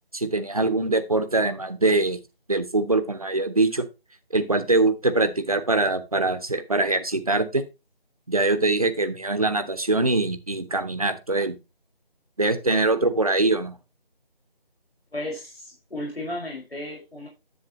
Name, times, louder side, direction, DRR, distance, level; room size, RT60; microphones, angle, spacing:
voice 1, 0.1-2.2 2.5-3.8 4.3-7.6 8.3-11.5 12.4-13.8, right 2 dB, 35° right, 10 dB, 1.0 m, -23 dB
voice 2, 15.1-17.3, left 1 dB, 85° left, -2 dB, 5.2 m, -34 dB
11.0 x 7.3 x 3.0 m, 0.25 s
figure-of-eight pair, 170°, 30 cm